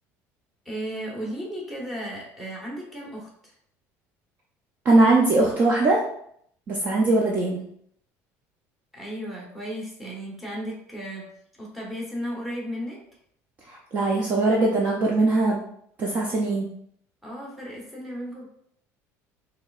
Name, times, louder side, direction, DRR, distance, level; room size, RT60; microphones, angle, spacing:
voice 1, 0.6-3.5 8.9-13.0 17.2-18.5, equal, ahead, -3 dB, 0.9 m, -35 dB
voice 2, 4.9-6.0 6.7-7.6 13.7-15.6 16.0-16.7, right 2 dB, 30° right, -2 dB, 0.5 m, -21 dB
4.6 x 3.2 x 2.4 m, 0.67 s
cardioid pair, 180°, 6 cm